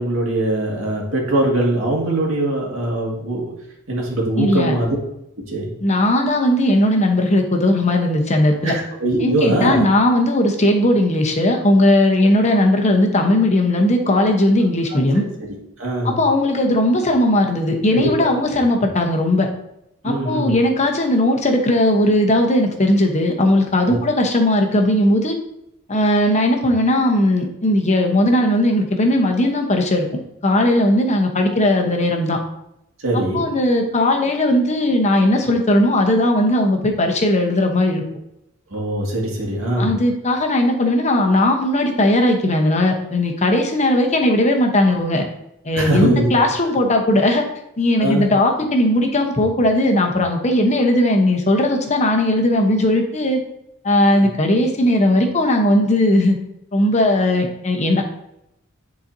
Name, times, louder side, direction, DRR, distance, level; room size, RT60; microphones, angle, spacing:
voice 1, 0.0-3.5 3.9-4.9 5.5-5.7 8.6-9.8 14.9-16.2 17.9-18.3 20.0-20.5 23.8-24.0 33.0-33.4 38.7-39.9 45.7-46.3 46.6-46.7 48.0-48.3 54.1-54.3, right 1 dB, 90° right, -2 dB, 2.0 m, -22 dB
voice 2, 4.4-4.8 5.8-8.7 9.2-15.2 16.0-19.5 20.0-25.4 25.9-30.0 30.4-32.4 33.1-38.0 39.8-45.2 45.6-47.5 47.8-53.4 53.8-56.4 56.7-58.1, left 1 dB, 35° left, 3 dB, 0.9 m, -17 dB
9.9 x 4.1 x 2.7 m, 0.81 s
head